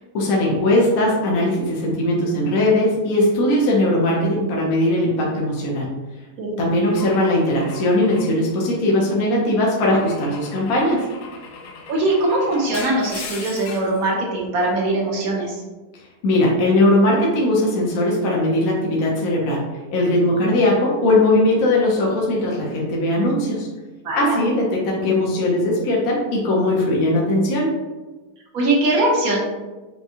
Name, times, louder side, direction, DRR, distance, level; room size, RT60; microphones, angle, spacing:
voice 1, 0.1-5.9 6.6-11.1 16.2-23.7 24.1-27.7, left 1 dB, 60° left, -3 dB, 1.2 m, -19 dB
Car / Engine / Glass, 6.9-9.1 9.8-14.0, left 4 dB, 90° left, 1.3 m, -38 dB
voice 2, 11.9-15.6 20.3-20.5 24.0-24.4 28.5-29.4, right 2 dB, 60° right, -2 dB, 1.3 m, -21 dB
6.1 x 2.3 x 2.7 m, 1.2 s
omnidirectional pair, 1.9 m